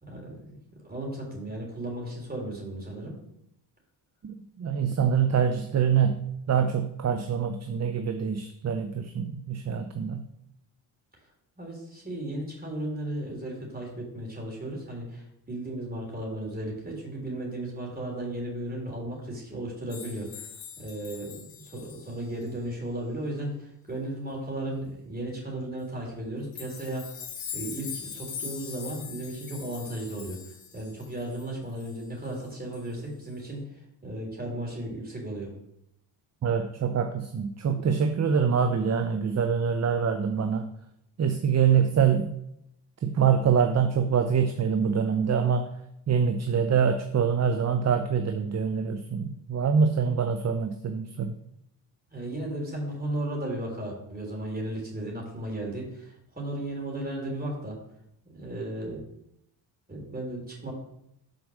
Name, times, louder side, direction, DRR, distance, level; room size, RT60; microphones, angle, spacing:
voice 1, 0.0-0.6 0.8-3.2 11.6-20.5 20.8-27.2 27.5-30.4 30.7-33.6 34.0-35.5 52.1-57.8 58.3-59.0 59.9-60.7, right 1 dB, 20° right, -1 dB, 3.5 m, -35 dB
voice 2, 4.2-10.3 36.4-40.7 41.2-42.3 43.0-45.7 46.1-51.3, right 7 dB, 35° right, 7 dB, 0.6 m, -25 dB
sound 1, 19.9-22.5 26.5-32.5 32.7-32.9 33.2-33.3, left 8 dB, 65° left, 1.7 m, -42 dB
6.2 x 5.0 x 6.3 m, 0.78 s
cardioid pair, 85°, 48 cm